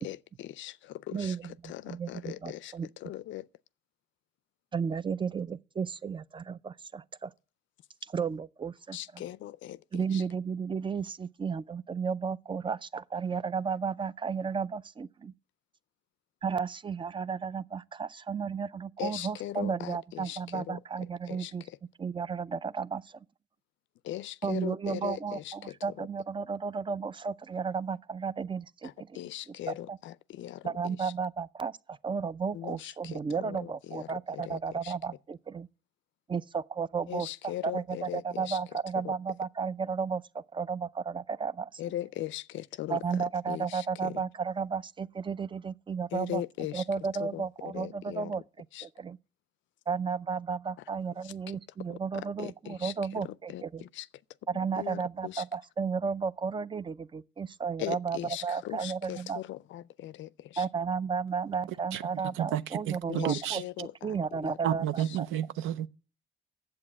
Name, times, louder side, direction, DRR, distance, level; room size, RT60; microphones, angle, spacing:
voice 1, 0.0-3.5 8.9-10.2 19.0-21.8 24.0-26.1 28.8-31.1 32.5-35.0 37.1-39.1 41.8-44.2 46.1-46.9 47.2-48.4 48.7-48.9 51.2-51.6 51.9-54.1 54.8-55.4 57.8-60.7 63.1-64.6 65.0-65.2, left 13 dB, 75° left, 0.4 m, -40 dB
voice 2, 1.1-1.5 1.9-2.9 4.7-7.3 8.0-9.0 9.9-15.3 16.4-21.6 22.0-23.2 24.4-29.1 29.7-30.0 30.6-35.7 36.3-37.3 37.6-41.8 42.9-46.4 46.7-48.4 48.8-49.2 49.9-53.8 54.5-58.2 58.4-59.4 60.6-65.3, right 5 dB, 25° right, 0.4 m, -33 dB
voice 3, 62.3-63.6 64.6-65.9, right 10 dB, 85° right, 0.6 m, -31 dB
8.8 x 7.7 x 7.2 m
cardioid pair, 90°, 20 cm